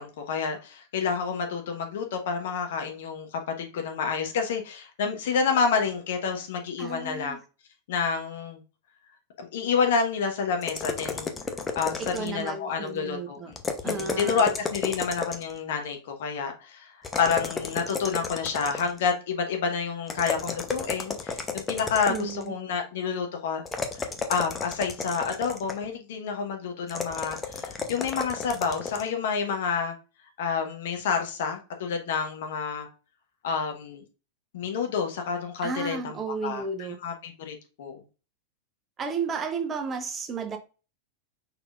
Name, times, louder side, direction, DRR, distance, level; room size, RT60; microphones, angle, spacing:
voice 1, 0.0-3.3 3.6-7.4 7.9-8.6 9.4-11.3 11.7-13.5 13.8-23.6 24.0-29.9 30.4-32.9 33.4-34.0 34.5-36.6 37.0-38.0, left 6 dB, 55° left, 1.1 m, -29 dB
voice 2, 6.8-7.4 12.0-13.5 13.8-14.5 22.1-22.5 35.6-37.0 39.0-40.6, right 5 dB, 25° right, 0.8 m, -33 dB
sound 1, 10.6-12.5 13.5-15.6 17.0-19.0 20.1-22.4 23.7-25.9 26.9-29.1, left 4 dB, 15° left, 0.7 m, -33 dB
4.9 x 4.2 x 2.4 m
figure-of-eight pair, 90°, 0 cm